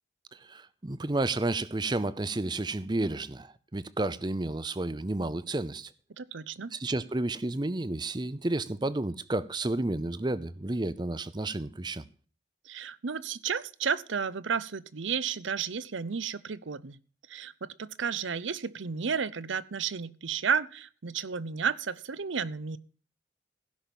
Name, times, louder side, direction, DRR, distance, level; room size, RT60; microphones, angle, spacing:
voice 1, 0.3-5.9 6.7-12.0, right 2 dB, 25° right, 0.6 m, -31 dB
voice 2, 6.2-6.7 12.6-17.0 17.3-22.8, right 6 dB, 85° right, 0.7 m, -32 dB
16.0 x 6.0 x 7.0 m
head